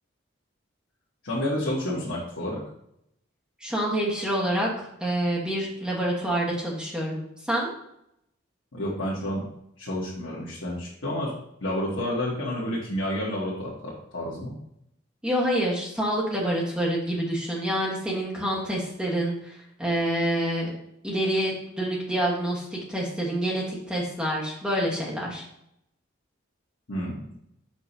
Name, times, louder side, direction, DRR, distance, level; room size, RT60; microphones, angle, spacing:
voice 1, 1.2-2.6 8.7-9.5 9.8-11.3 11.6-14.5 26.9-27.3, left 1 dB, 90° left, -8 dB, 1.4 m, -30 dB
voice 2, 3.6-7.7 15.2-20.7 21.0-25.4, right 1 dB, 5° right, -4 dB, 1.2 m, -27 dB
6.0 x 3.0 x 5.4 m, 0.77 s
head